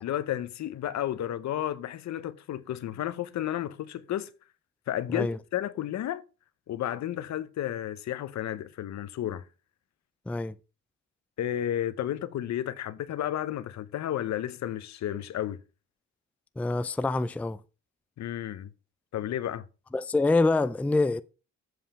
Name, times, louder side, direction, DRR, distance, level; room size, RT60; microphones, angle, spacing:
voice 1, 0.0-4.3 4.9-6.2 6.7-9.4 11.4-15.6 18.2-18.7 19.1-19.7, left 11 dB, 65° left, 0.8 m, -32 dB
voice 2, 16.6-17.6 19.9-21.2, left 3 dB, 5° left, 0.4 m, -25 dB
7.8 x 5.0 x 5.6 m
cardioid pair, 90°, 30 cm